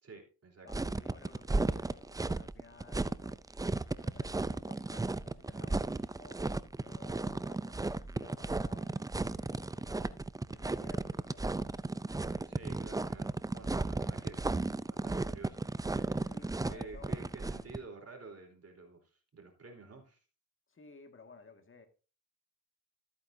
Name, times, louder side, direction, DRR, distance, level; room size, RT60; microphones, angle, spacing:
voice 1, 0.0-0.7 12.5-14.4 14.9-15.7 15.9-16.4 16.7-20.2, right 3 dB, 40° right, 3.7 m, -51 dB
voice 2, 0.6-3.4 3.9-6.4 6.8-10.2 10.5-11.4 16.3-17.7 20.7-21.9, left 4 dB, 35° left, 1.9 m, -56 dB
sound 1, 0.7-17.8, right 2 dB, 10° right, 0.4 m, -34 dB
13.5 x 8.6 x 2.7 m
cardioid pair, 65°, 37 cm